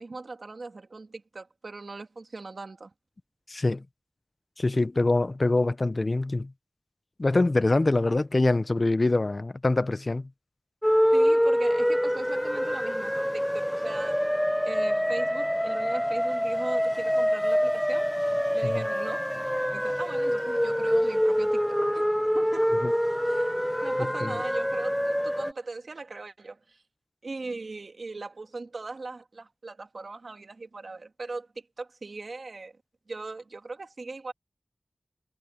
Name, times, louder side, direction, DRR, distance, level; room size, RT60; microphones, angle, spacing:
voice 1, 0.0-2.9 11.1-14.2 14.6-18.1 18.5-19.3 19.7-22.1 22.3-22.8 23.2-23.5 23.8-26.8 27.2-32.7 33.1-34.3, right 3 dB, 75° right, 2.3 m, -39 dB
voice 2, 3.5-3.8 4.6-6.5 7.2-10.3 18.7-18.8 22.8-22.9 24.0-24.3, left 2 dB, 50° left, 0.9 m, -24 dB
sound 1, 10.8-25.5, equal, 5° left, 1.1 m, -25 dB
wide cardioid pair, 45°, 0 cm